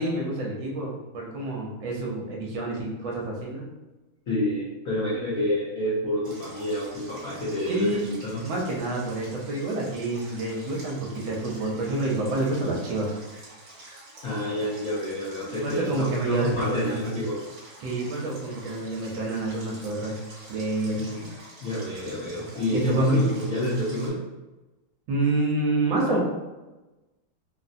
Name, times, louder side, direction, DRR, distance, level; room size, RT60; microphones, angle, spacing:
voice 1, 0.0-3.7 7.7-8.1 8.4-13.2 15.6-17.0 17.8-20.2 20.5-21.0 22.7-23.3 25.1-26.2, right 2 dB, 75° right, -2 dB, 1.4 m, -28 dB
voice 2, 4.3-8.4 14.2-17.4 21.0-21.3 21.6-24.2, left 1 dB, 75° left, -7 dB, 0.7 m, -28 dB
Stream, 6.2-24.1, right 1 dB, 50° right, 1.2 m, -47 dB
3.7 x 2.1 x 2.5 m, 1.1 s
omnidirectional pair, 2.3 m